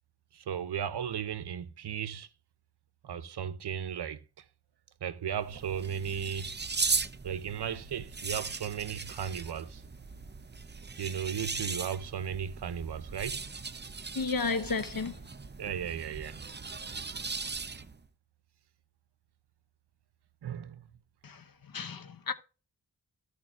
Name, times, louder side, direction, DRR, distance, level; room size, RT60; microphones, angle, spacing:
voice 1, 0.3-2.3 3.0-4.2 5.0-6.5 7.2-9.8 11.0-13.4 15.6-16.4 20.4-20.8, right 8 dB, 90° right, 0.7 m, -35 dB
sound 1, 5.3-18.0, right 4 dB, 25° right, 0.7 m, -38 dB
voice 2, 14.2-15.1 21.7-22.3, left 4 dB, 60° left, 1.0 m, -31 dB
14.5 x 6.5 x 2.4 m
cardioid pair, 50°, 39 cm